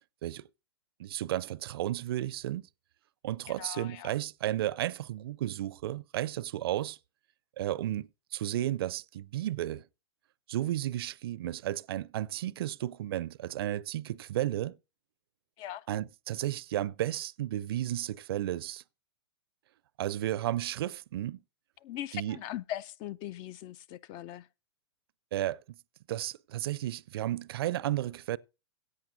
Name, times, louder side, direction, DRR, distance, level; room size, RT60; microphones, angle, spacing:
voice 1, 1.0-2.7 3.2-7.0 7.6-9.9 10.5-14.8 15.9-18.8 20.0-21.4 22.1-22.4 25.3-25.8 26.1-28.4, right 13 dB, 55° right, 0.5 m, -33 dB
voice 2, 3.5-4.1 15.6-15.9 21.8-24.5, left 12 dB, 35° left, 0.4 m, -40 dB
16.5 x 8.6 x 2.6 m
figure-of-eight pair, 110°, 15 cm